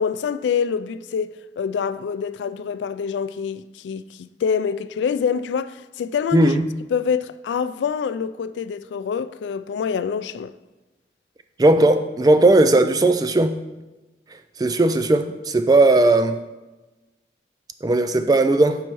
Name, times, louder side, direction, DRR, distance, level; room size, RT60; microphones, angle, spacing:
voice 1, 0.0-6.5 6.9-10.5, left 6 dB, 90° left, 0.3 m, -26 dB
voice 2, 6.3-6.6 11.6-13.6 14.6-16.4 17.8-18.8, right 2 dB, 20° right, 0.3 m, -17 dB
6.1 x 5.5 x 4.6 m
head